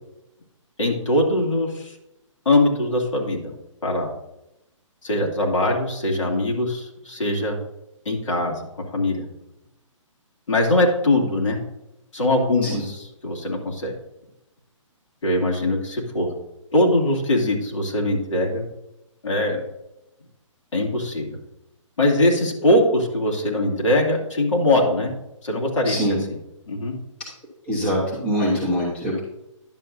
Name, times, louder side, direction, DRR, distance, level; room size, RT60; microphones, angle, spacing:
voice 1, 0.8-1.9 2.5-3.5 3.8-4.1 5.0-7.6 8.1-8.6 8.9-9.2 10.5-11.6 12.1-13.9 15.2-16.3 16.7-18.7 19.2-19.6 20.7-21.4 22.0-25.1 25.4-26.4 26.7-26.9, left 1 dB, 65° left, -1 dB, 2.4 m, -21 dB
voice 2, 25.9-26.2 27.7-29.2, equal, 5° left, -5 dB, 1.0 m, -23 dB
10.5 x 7.3 x 2.6 m, 0.89 s
hypercardioid pair, 175°, 17 cm